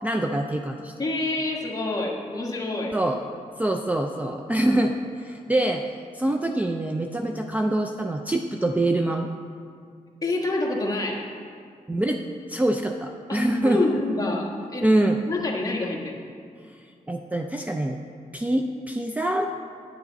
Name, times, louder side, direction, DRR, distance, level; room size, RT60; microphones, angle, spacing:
voice 1, 0.0-0.9 2.9-3.2 3.6-5.8 6.1-9.3 11.9-12.2 12.5-13.9 14.8-15.2 16.7-16.8 17.1-18.0 18.3-19.5, right 1 dB, 10° right, 4 dB, 0.4 m, -25 dB
voice 2, 1.0-3.0 10.2-11.3 13.3-14.9 15.3-16.2, left 2 dB, 25° left, -2 dB, 1.4 m, -27 dB
9.8 x 9.2 x 4.0 m, 2.2 s
wide cardioid pair, 115°, 14 cm